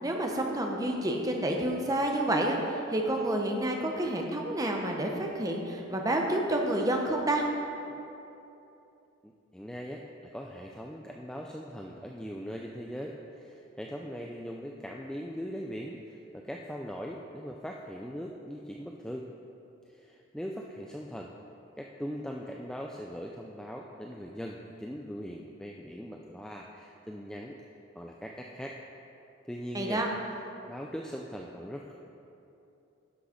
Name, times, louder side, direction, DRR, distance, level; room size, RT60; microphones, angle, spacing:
voice 1, 0.0-7.4 29.7-30.1, right 1 dB, 15° right, 1 dB, 0.8 m, -29 dB
voice 2, 9.2-19.3 19.9-21.3 21.8-27.6 28.0-28.8 29.4-30.0 30.7-31.9, equal, 5° left, 0 dB, 0.3 m, -40 dB
11.0 x 6.2 x 5.0 m, 2.9 s
head